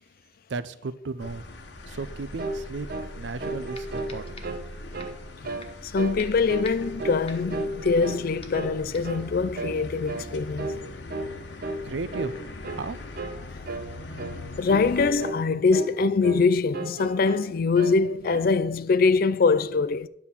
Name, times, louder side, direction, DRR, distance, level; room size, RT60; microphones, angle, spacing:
voice 1, 0.5-1.4 1.9-2.9 3.2-4.6 11.8-12.4 12.7-13.0, right 3 dB, 75° right, 0.5 m, -34 dB
sound 1, 1.2-15.1, left 1 dB, 75° left, 1.2 m, -41 dB
sound 2, 2.4-2.6 2.9-3.1 3.4-4.6 4.9-5.2 5.4-5.7 6.0-6.2 6.5-7.2 7.5-8.3 8.5-8.8 9.0-9.3 9.5-9.8 10.1-10.3 10.6-10.8 11.1-11.3 11.6-11.8 12.1-12.4 12.6-12.8 13.2-13.4 13.7-13.9 14.2-14.4 14.7-15.4 15.7-16.5 16.7-17.5 17.8-18.5, right 2 dB, 55° right, 1.0 m, -33 dB
sound 3, 3.2-3.3 3.7-4.7 5.0-5.2 5.6-5.9 6.2-8.1 8.4-8.7 8.9-9.2, left 3 dB, 30° left, 1.2 m, -46 dB
voice 2, 5.8-10.7 14.6-20.1, left 4 dB, 50° left, 0.4 m, -23 dB
10.5 x 4.1 x 7.2 m
head